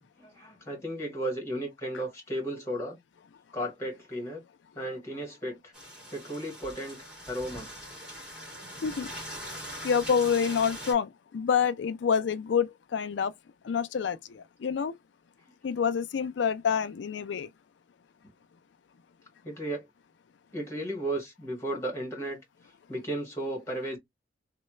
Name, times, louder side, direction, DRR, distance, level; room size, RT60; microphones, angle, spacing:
voice 1, 0.2-3.0 3.5-4.4 4.7-5.7 6.1-7.7 19.4-19.9 20.5-24.0, right 1 dB, 15° left, 1.5 m, -35 dB
sound 1, 5.7-10.9, equal, 5° right, 1.9 m, -42 dB
voice 2, 9.8-13.3 13.6-14.9 15.6-17.5, left 7 dB, 80° left, 0.4 m, -27 dB
3.1 x 2.2 x 3.0 m
head